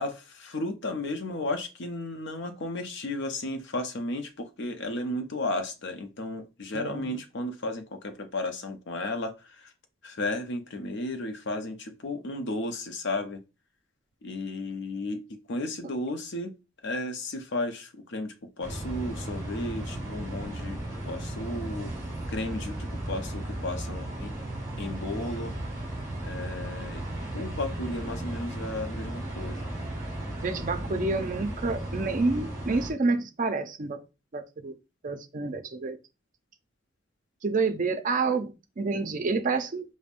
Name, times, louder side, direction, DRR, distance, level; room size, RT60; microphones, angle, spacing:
voice 1, 0.0-9.7 10.0-13.4 14.2-16.5 16.8-21.9 22.3-24.3 24.8-25.5 26.2-27.0 27.3-29.6, left 2 dB, 60° left, 0.6 m, -34 dB
voice 2, 6.7-7.2 30.4-34.0 34.3-34.7 35.0-36.0 37.4-39.8, right 3 dB, 40° right, 0.5 m, -28 dB
sound 1, 18.6-32.9, right 1 dB, 15° right, 1.3 m, -35 dB
5.1 x 2.1 x 2.5 m
head